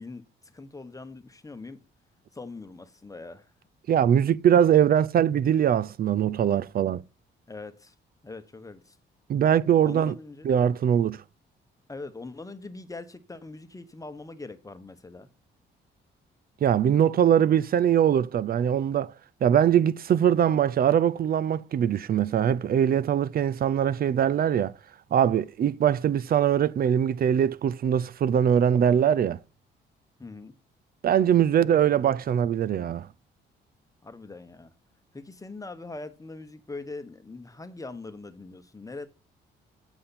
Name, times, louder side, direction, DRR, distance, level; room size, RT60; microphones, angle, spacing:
voice 1, 0.0-1.8 2.3-3.5 7.5-7.9 8.2-9.0 9.8-10.5 11.9-15.3 30.2-30.5 34.0-34.7 35.1-39.1, left 3 dB, 15° left, 1.1 m, -42 dB
voice 2, 3.9-7.0 9.3-10.1 10.4-11.2 16.6-19.1 19.4-24.7 25.1-29.4 31.0-33.1, right 9 dB, 50° right, 0.5 m, -22 dB
7.6 x 7.0 x 4.2 m
cardioid pair, 90°, 20 cm